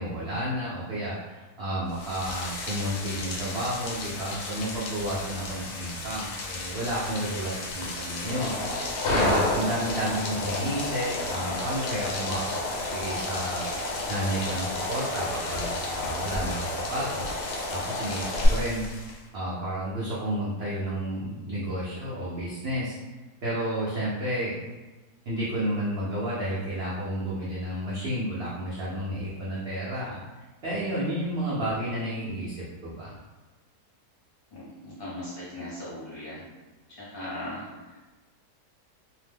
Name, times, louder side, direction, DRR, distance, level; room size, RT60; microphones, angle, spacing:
voice 1, 0.0-12.6 12.9-17.3 17.7-18.8 19.3-23.0 23.4-24.5 25.3-30.2 30.6-32.6 32.8-33.1, right 1 dB, 70° right, -7 dB, 0.6 m, -31 dB
Rain, 1.9-19.3, left 3 dB, 70° left, 0.9 m, -36 dB
sound 1, 7.8-18.5, left 1 dB, 90° left, 1.3 m, -31 dB
voice 2, 34.5-36.4 36.9-38.0, left 1 dB, 45° left, -8 dB, 0.8 m, -39 dB
2.7 x 2.1 x 3.3 m, 1.2 s
omnidirectional pair, 1.7 m